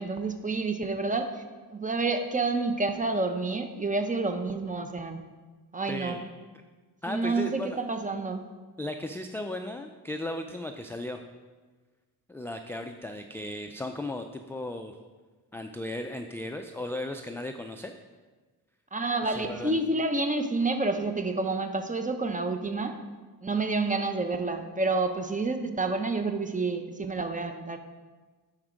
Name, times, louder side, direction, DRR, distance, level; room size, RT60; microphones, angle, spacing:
voice 1, 0.0-1.4 1.7-5.2 5.7-6.2 7.1-8.5 18.9-22.9 23.4-27.8, right 3 dB, 20° right, 7 dB, 0.8 m, -29 dB
voice 2, 5.9-6.2 7.0-7.8 8.8-11.2 12.3-15.0 15.5-17.9 19.3-19.8 22.9-23.0, left 1 dB, 5° left, 5 dB, 0.3 m, -36 dB
9.7 x 4.4 x 5.1 m, 1.3 s
cardioid pair, 80°, 42 cm